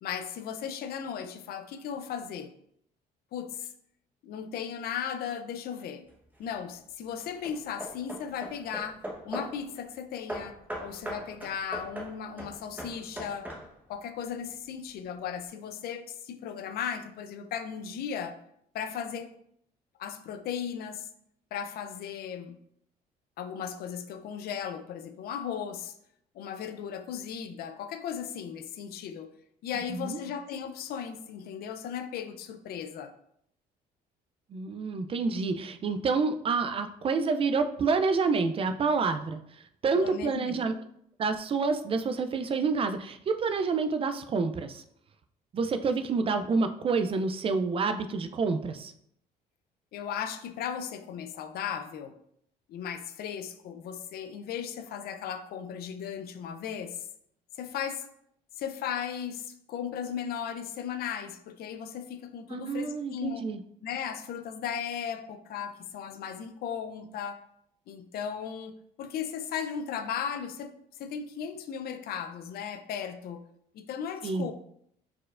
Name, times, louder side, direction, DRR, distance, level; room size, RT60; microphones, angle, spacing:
voice 1, 0.0-2.5 3.3-3.7 4.2-6.1 6.4-13.5 13.9-18.4 18.7-19.3 20.0-21.1 21.5-22.6 23.4-25.9 26.3-29.3 29.6-33.1 39.9-40.6 49.9-52.2 52.7-57.0 57.6-58.1 58.6-63.4 63.8-67.4 67.9-73.4 73.7-74.5, left 8 dB, 65° left, 9 dB, 0.5 m, -36 dB
Hammer / Wood, 6.1-6.6 7.2-9.6 10.3-13.9, right 1 dB, 10° right, 1.0 m, -40 dB
voice 2, 34.5-40.7 41.2-44.8 45.5-48.9 62.5-63.6 74.2-74.5, right 4 dB, 35° right, 9 dB, 0.3 m, -28 dB
4.4 x 4.3 x 2.4 m, 0.70 s
cardioid pair, 110°, 17 cm